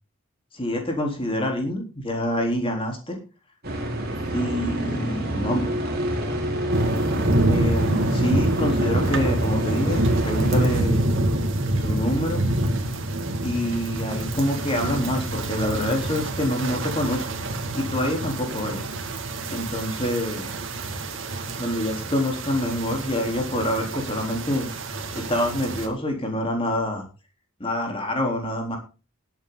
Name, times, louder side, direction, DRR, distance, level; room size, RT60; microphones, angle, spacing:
voice 1, 0.5-3.2 4.3-5.7 7.5-11.1 11.7-12.4 13.4-17.3 17.7-18.8 19.5-20.5 21.6-24.7 25.1-27.1 27.6-28.8, left 1 dB, 25° left, 2 dB, 3.8 m, -26 dB
sound 1, 3.6-10.8, right 1 dB, 45° right, 4.3 m, -27 dB
sound 2, 6.7-25.9, right 1 dB, 60° right, 2.3 m, -26 dB
20.0 x 8.4 x 4.0 m, 0.33 s
head